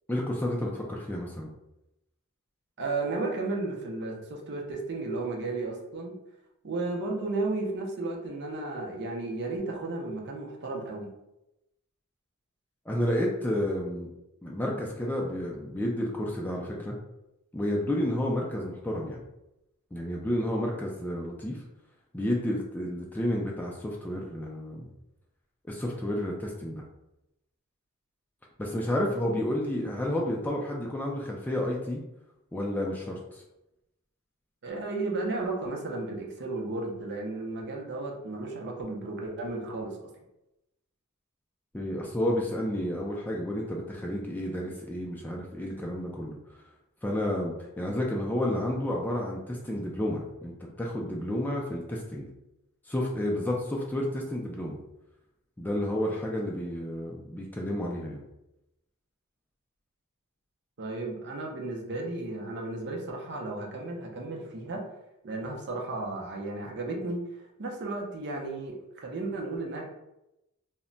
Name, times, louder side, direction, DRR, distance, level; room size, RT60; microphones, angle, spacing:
voice 1, 0.1-1.5 12.9-14.1 14.4-17.0 17.5-19.2 19.9-21.6 22.1-24.9 25.6-26.8 28.6-32.0 32.5-33.4 41.7-46.4 47.0-52.3 52.9-54.8 55.6-58.2, left 1 dB, 10° left, -2 dB, 0.3 m, -31 dB
voice 2, 2.8-6.2 6.6-11.1 34.6-40.0 60.8-64.8 65.2-67.2 67.6-69.9, right 2 dB, 50° right, 0 dB, 0.6 m, -34 dB
2.1 x 2.1 x 3.7 m, 0.90 s
head